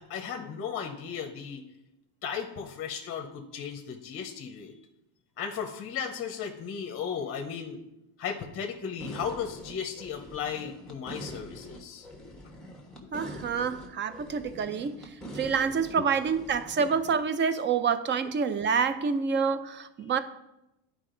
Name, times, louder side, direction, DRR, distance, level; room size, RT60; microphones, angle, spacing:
voice 1, 0.0-1.6 2.2-4.7 5.4-7.8 8.2-12.1 13.0-13.1 13.4-13.5 14.5-14.6 16.0-16.1, left 7 dB, 35° left, 4 dB, 0.8 m, -36 dB
sound 1, 9.0-17.2, equal, ahead, 1.2 m, -44 dB
voice 2, 13.1-20.2, right 6 dB, 30° right, 12 dB, 0.6 m, -27 dB
10.5 x 4.9 x 3.8 m, 0.90 s
supercardioid pair, 120°, 38 cm